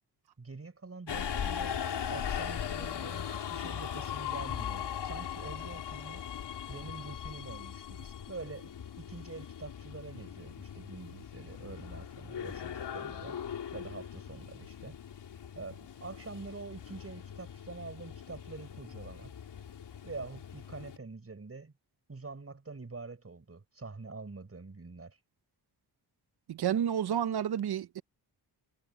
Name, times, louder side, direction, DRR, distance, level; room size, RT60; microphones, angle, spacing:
voice 1, 0.4-1.8 2.1-6.2 6.7-13.4 13.7-15.0 15.6-19.3 20.0-21.7 22.1-25.2, right 3 dB, 35° right, 5.7 m, -46 dB
Subway metro underground, 1.1-21.0, left 8 dB, 75° left, 2.8 m, -40 dB
voice 2, 26.5-28.0, right 9 dB, 65° right, 0.9 m, -30 dB
cardioid pair, 70°, 42 cm